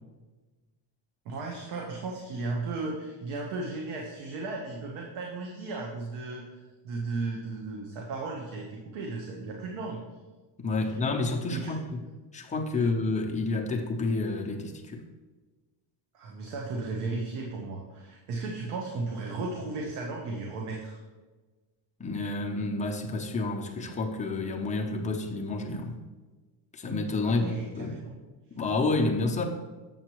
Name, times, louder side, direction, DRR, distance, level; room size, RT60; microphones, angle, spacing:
voice 1, 1.2-6.6 6.8-10.0 10.8-11.0 11.5-11.8 12.8-12.9 16.1-21.0 27.2-28.1, right 3 dB, 85° right, 0 dB, 1.2 m, -35 dB
voice 2, 10.6-11.8 12.3-15.0 22.0-25.9 26.7-27.5 27.8-27.9 28.5-29.4, left 3 dB, 15° left, 1 dB, 0.7 m, -29 dB
7.5 x 7.2 x 3.0 m, 1.3 s
cardioid pair, 145°, 49 cm